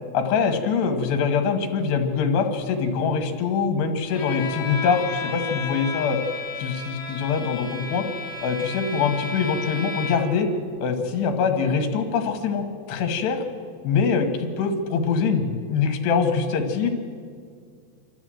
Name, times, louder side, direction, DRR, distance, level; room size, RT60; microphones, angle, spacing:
voice 1, 0.1-6.2 6.6-8.1 8.4-10.5 10.8-13.4 13.8-16.9, left 5 dB, 75° left, 6 dB, 3.7 m, -23 dB
Bowed string instrument, 4.1-10.4, left 4 dB, 35° left, 2.8 m, -33 dB
27.0 x 13.5 x 7.7 m, 2.1 s
omnidirectional pair, 4.9 m